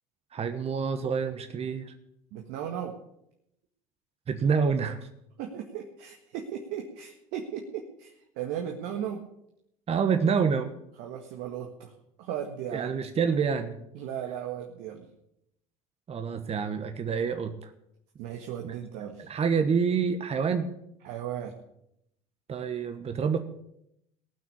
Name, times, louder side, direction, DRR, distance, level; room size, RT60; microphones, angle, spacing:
voice 1, 0.3-1.9 4.3-5.1 9.9-10.7 12.7-13.8 16.1-17.7 18.6-18.7 19.2-20.7 22.5-23.4, right 6 dB, 35° right, 8 dB, 1.3 m, -27 dB
voice 2, 2.3-2.9 5.4-9.2 11.0-11.9 12.2-13.0 13.9-15.1 18.2-19.3 21.0-21.5, right 9 dB, 65° right, 2 dB, 1.7 m, -36 dB
18.5 x 6.2 x 8.4 m, 0.78 s
hypercardioid pair, 70°, 18 cm